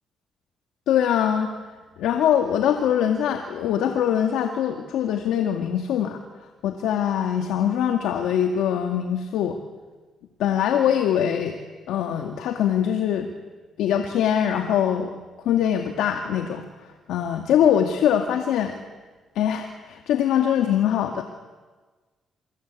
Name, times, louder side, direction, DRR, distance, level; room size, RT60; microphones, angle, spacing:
voice 1, 0.9-1.5 2.0-6.2 6.6-9.6 10.4-11.6 11.9-13.3 13.8-15.1 15.5-16.6 17.1-18.8 19.4-21.2, left 9 dB, 85° left, 4 dB, 2.1 m, -22 dB
27.0 x 25.0 x 8.4 m, 1.3 s
cardioid pair, 90°, 0 cm